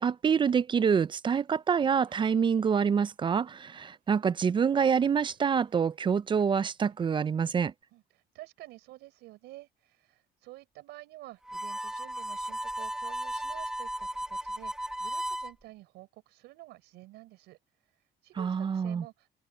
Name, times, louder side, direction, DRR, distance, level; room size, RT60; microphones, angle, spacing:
voice 1, 0.0-7.7 18.4-19.0, right 6 dB, 30° right, 0.4 m, -26 dB
sound 1, 1.6-3.1 3.5-7.6 7.8-7.9, right 10 dB, 60° right, 7.4 m, -62 dB
voice 2, 7.9-17.6 18.2-19.3, right 18 dB, 90° right, 6.8 m, -50 dB
Harmonica, 11.5-15.5, right 1 dB, 5° right, 1.5 m, -35 dB
open air
cardioid pair, 110°, 17 cm